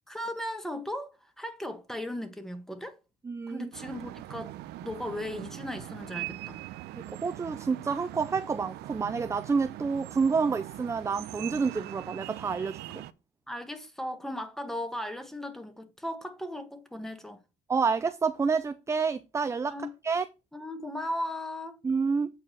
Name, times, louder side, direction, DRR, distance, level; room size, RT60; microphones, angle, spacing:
voice 1, 0.1-3.0 3.5-4.5 4.8-6.6 13.5-17.4 19.7-19.9 20.5-21.8, left 1 dB, ahead, 1.6 m, -37 dB
voice 2, 3.2-3.7 6.9-13.0 17.7-19.7 20.0-20.2 21.8-22.3, right 5 dB, 15° right, 0.5 m, -28 dB
sound 1, 3.7-13.1, right 16 dB, 80° right, 0.6 m, -42 dB
8.6 x 4.8 x 4.6 m
cardioid pair, 110°, 17 cm